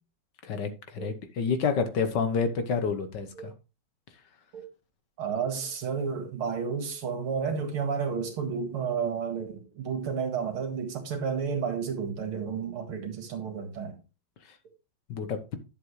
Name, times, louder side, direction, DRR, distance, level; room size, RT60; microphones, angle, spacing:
voice 1, 0.4-3.5 14.4-14.5 15.1-15.6, left 5 dB, 60° left, 1.5 m, -29 dB
voice 2, 5.2-14.0, right 6 dB, 90° right, 2.7 m, -31 dB
10.5 x 7.4 x 3.1 m
omnidirectional pair, 2.3 m